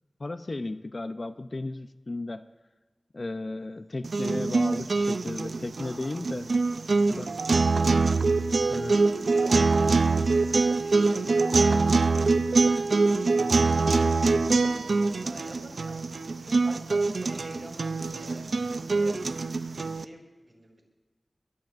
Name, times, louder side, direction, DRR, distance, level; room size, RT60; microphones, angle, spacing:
voice 1, 0.2-2.5 3.1-6.5 7.1-7.3 8.7-9.0, left 2 dB, 50° left, 9 dB, 0.6 m, -35 dB
sound 1, 4.0-20.0, right 3 dB, 85° right, 0.5 m, -24 dB
voice 2, 5.8-6.1 6.9-7.3 7.7-11.8 12.8-19.2 19.6-20.8, right 1 dB, 30° right, 1 dB, 4.9 m, -48 dB
22.5 x 21.0 x 2.6 m, 1.2 s
wide cardioid pair, 80°, 0 cm